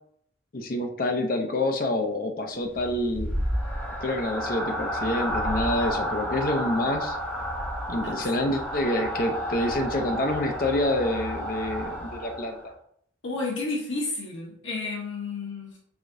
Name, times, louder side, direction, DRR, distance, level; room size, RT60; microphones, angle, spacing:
voice 1, 0.5-3.3 4.0-7.2 7.9-12.7, left 1 dB, 50° left, 3 dB, 0.6 m, -27 dB
sound 1, 2.7-12.7, equal, 5° left, 0.8 m, -31 dB
voice 2, 13.2-15.8, left 3 dB, 75° left, -4 dB, 1.0 m, -31 dB
5.0 x 3.7 x 2.6 m, 0.67 s
head